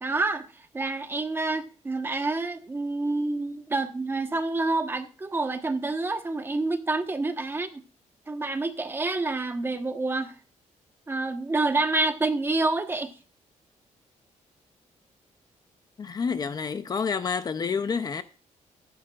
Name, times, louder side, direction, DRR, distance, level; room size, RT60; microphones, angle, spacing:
voice 1, 0.0-0.4 0.7-7.8 8.3-10.3 11.1-13.1, right 2 dB, 15° right, 1.1 m, -28 dB
voice 2, 16.0-18.2, left 5 dB, 30° left, 0.6 m, -28 dB
15.0 x 12.0 x 2.4 m
wide cardioid pair, 170°, 13 cm